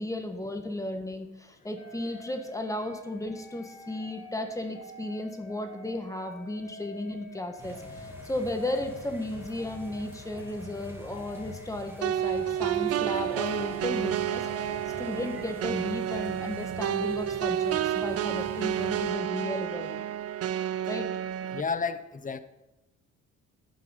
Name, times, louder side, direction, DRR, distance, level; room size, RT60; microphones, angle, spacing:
voice 1, 0.0-14.5 15.0-20.0 20.9-21.1, left 1 dB, 10° left, 5 dB, 1.4 m, -34 dB
sound 1, 1.8-15.3, left 3 dB, 60° left, 1.8 m, -47 dB
sound 2, 7.6-19.1, right 1 dB, 10° right, 2.1 m, -47 dB
sound 3, 12.0-21.6, right 11 dB, 55° right, 0.5 m, -30 dB
voice 2, 21.5-22.4, left 5 dB, 25° left, 12 dB, 0.8 m, -31 dB
11.5 x 5.6 x 5.7 m, 0.96 s
cardioid pair, 90°, 30 cm